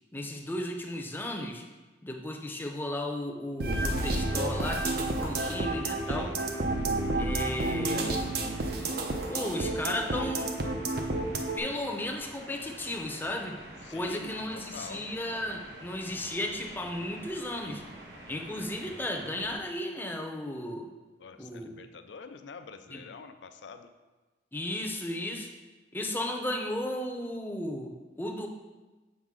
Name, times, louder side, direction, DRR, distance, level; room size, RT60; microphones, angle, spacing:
voice 1, 0.1-1.6 2.0-6.3 7.2-8.2 9.3-10.5 11.6-13.6 13.9-17.8 18.3-20.9 21.4-21.8 22.9-23.0 24.5-25.5 25.9-28.5, left 1 dB, 10° left, 2 dB, 0.6 m, -35 dB
sound 1, 3.6-11.6, right 2 dB, 60° right, 0.7 m, -30 dB
sound 2, 4.0-19.6, right 1 dB, 85° right, 1.3 m, -48 dB
voice 2, 6.1-6.4 13.8-15.0 21.2-23.9, left 5 dB, 80° left, 9 dB, 0.5 m, -46 dB
7.5 x 5.0 x 3.6 m, 1.2 s
head